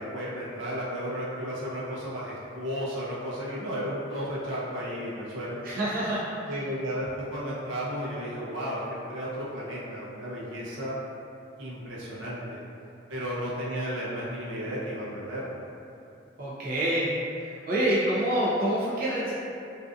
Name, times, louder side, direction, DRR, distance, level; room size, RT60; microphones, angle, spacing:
voice 1, 0.0-5.6 6.5-11.0 11.6-12.6 13.1-15.6, equal, 85° right, -8 dB, 0.7 m, -33 dB
voice 2, 5.6-6.2 16.4-17.1 17.5-19.3, right 1 dB, 50° right, -8 dB, 0.4 m, -26 dB
2.5 x 2.4 x 2.3 m, 2.7 s
head